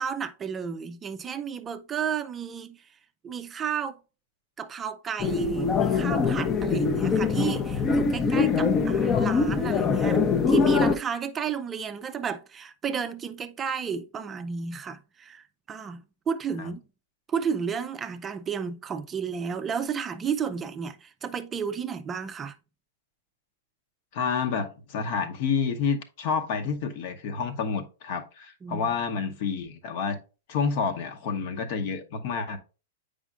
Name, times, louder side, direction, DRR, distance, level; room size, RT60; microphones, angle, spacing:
voice 1, 0.0-3.0 3.2-4.0 4.6-16.8 17.3-22.6 28.6-28.9, right 7 dB, 20° right, 0.4 m, -32 dB
sound 1, 5.2-11.0, left 5 dB, 25° left, 0.6 m, -23 dB
voice 2, 24.1-30.2 30.5-32.6, left 5 dB, 50° left, 1.0 m, -29 dB
8.0 x 5.1 x 2.5 m
hypercardioid pair, 110°, 0 cm